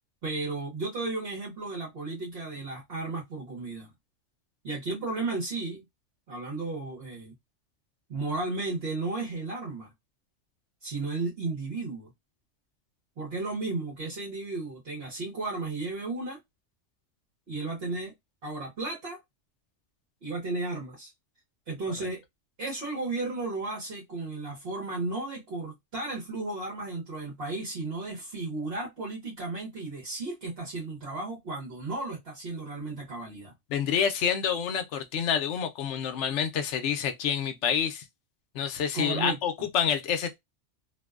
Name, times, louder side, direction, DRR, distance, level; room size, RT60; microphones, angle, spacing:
voice 1, 0.2-3.9 4.6-5.9 6.3-7.3 8.1-9.9 10.8-12.1 13.2-16.4 17.5-18.1 18.4-19.2 20.2-21.1 21.7-22.2 22.6-33.5 38.9-39.4, right 3 dB, 55° right, 1.0 m, -34 dB
voice 2, 33.7-38.0 38.5-40.4, left 8 dB, 75° left, 0.9 m, -28 dB
2.6 x 2.1 x 2.2 m
omnidirectional pair, 1.3 m